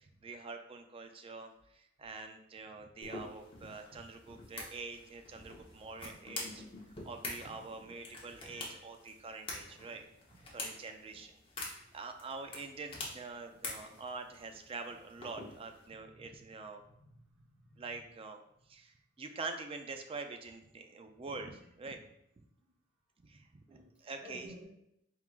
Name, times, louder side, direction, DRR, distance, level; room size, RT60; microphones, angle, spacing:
voice 1, 0.0-6.7 7.0-10.0 10.5-11.4 11.9-16.8 17.8-18.4 18.7-22.1 22.4-22.5 23.2-24.6, right 3 dB, 25° right, 5 dB, 0.3 m, -45 dB
sound 1, 3.0-15.9, left 2 dB, 25° left, 0.9 m, -47 dB
voice 2, 16.0-16.6 16.8-17.8 23.7-24.6, equal, 5° right, -8 dB, 1.2 m, -55 dB
4.4 x 3.7 x 2.4 m, 0.78 s
head